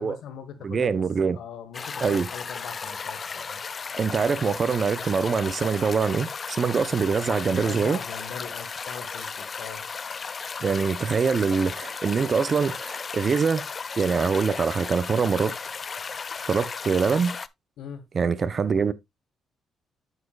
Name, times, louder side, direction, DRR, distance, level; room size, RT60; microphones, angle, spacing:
voice 1, 0.0-1.0 1.3-3.6 7.5-9.9 17.8-18.0, left 7 dB, 75° left, 1.5 m, -40 dB
voice 2, 0.6-1.4 2.0-2.3 4.0-8.0 10.6-13.7 14.0-15.5 16.4-17.4 18.1-18.9, right 5 dB, 40° right, 0.7 m, -24 dB
sound 1, 1.7-17.5, left 5 dB, 40° left, 0.4 m, -35 dB
8.1 x 7.6 x 2.4 m
cardioid pair, 90°, 0 cm